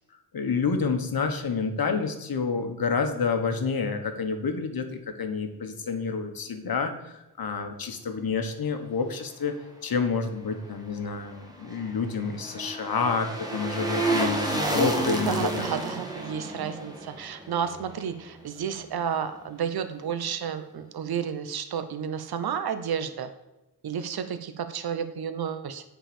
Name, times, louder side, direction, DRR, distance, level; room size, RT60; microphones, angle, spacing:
voice 1, 0.3-9.5 9.8-15.7, left 5 dB, 60° left, 6 dB, 1.4 m, -29 dB
sound 1, 11.3-18.5 18.8-18.9, right 2 dB, 10° right, 1.7 m, -31 dB
voice 2, 15.1-23.3 23.8-25.8, right 8 dB, 65° right, 10 dB, 0.9 m, -31 dB
9.1 x 4.9 x 7.0 m, 0.95 s
wide cardioid pair, 120°, 41 cm